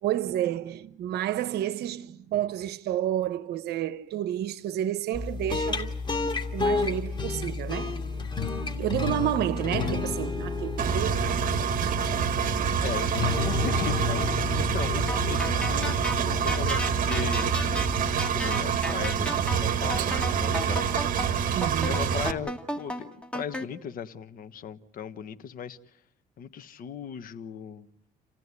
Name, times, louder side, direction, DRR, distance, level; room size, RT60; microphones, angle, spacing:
voice 1, 0.0-5.9 6.5-8.0 8.6-11.4 11.8-12.1 14.6-14.7 21.5-22.0, right 12 dB, 70° right, 1.1 m, -30 dB
sound 1, 5.1-18.7, left 4 dB, 30° left, 2.8 m, -31 dB
Engine, 10.8-22.3, right 8 dB, 55° right, 1.7 m, -27 dB
voice 2, 12.8-17.5 18.3-20.8 21.9-25.8 26.4-27.9, left 8 dB, 55° left, 1.3 m, -37 dB
sound 2, 15.1-23.6, left 1 dB, 5° left, 2.0 m, -34 dB
29.0 x 16.0 x 9.8 m
cardioid pair, 110°, 17 cm